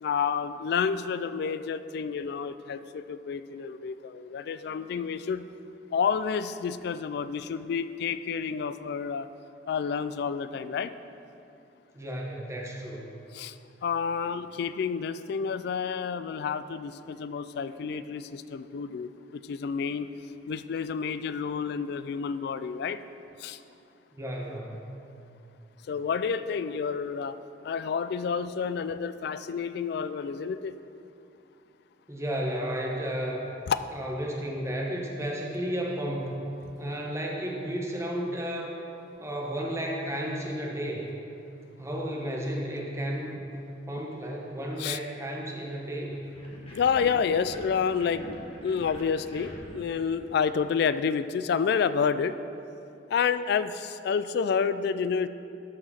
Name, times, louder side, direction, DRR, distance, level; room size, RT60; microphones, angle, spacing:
voice 1, 0.0-5.5 5.9-9.3 9.7-10.9 13.3-13.6 13.8-20.1 20.5-23.0 23.4-23.6 25.9-27.4 27.6-30.8 33.7-33.8 44.8-45.0 46.7-48.2 48.6-52.3 53.1-55.3, left 6 dB, 60° left, 13 dB, 0.3 m, -29 dB
voice 2, 11.9-13.1 24.1-24.9 32.1-33.4 33.9-36.4 36.8-38.7 39.2-41.1 41.8-43.5 43.9-46.1, equal, 15° right, -1 dB, 1.1 m, -33 dB
sound 1, 46.3-51.0, equal, 30° left, 1.3 m, -45 dB
12.0 x 4.8 x 4.2 m, 2.7 s
head